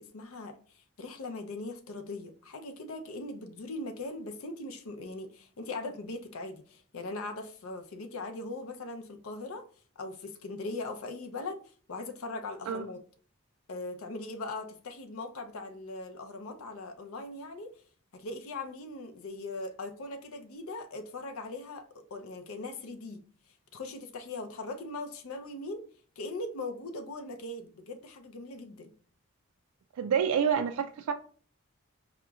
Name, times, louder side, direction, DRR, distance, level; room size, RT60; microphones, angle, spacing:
voice 1, 0.0-9.7 10.0-13.0 13.7-17.8 18.1-23.2 23.5-25.8 26.2-28.9, left 2 dB, 75° left, 0.5 m, -40 dB
voice 2, 30.0-31.1, right 7 dB, 80° right, 0.3 m, -28 dB
4.8 x 2.9 x 2.3 m
head